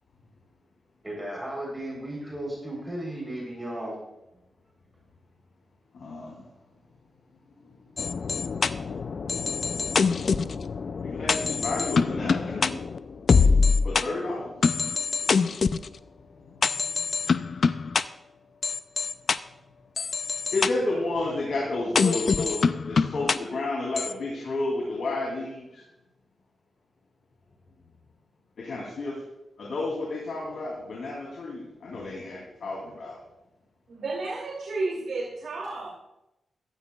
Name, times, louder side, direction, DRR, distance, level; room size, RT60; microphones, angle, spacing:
voice 1, 1.0-4.0, right 1 dB, 10° right, -3 dB, 3.7 m, -35 dB
voice 2, 5.9-6.4 11.0-12.7 13.8-14.5 20.5-25.8 28.6-29.1 29.6-33.2, left 2 dB, 70° left, -3 dB, 2.9 m, -31 dB
sound 1, 8.0-14.0 14.6-15.9 16.6-18.0 18.6-19.4 20.0-20.7 22.0-23.4 24.0-24.1, left 5 dB, 55° left, 0.4 m, -24 dB
voice 3, 33.9-35.9, right 3 dB, 80° right, -4 dB, 2.8 m, -32 dB
15.0 x 12.5 x 2.4 m, 0.90 s
wide cardioid pair, 130°, 0 cm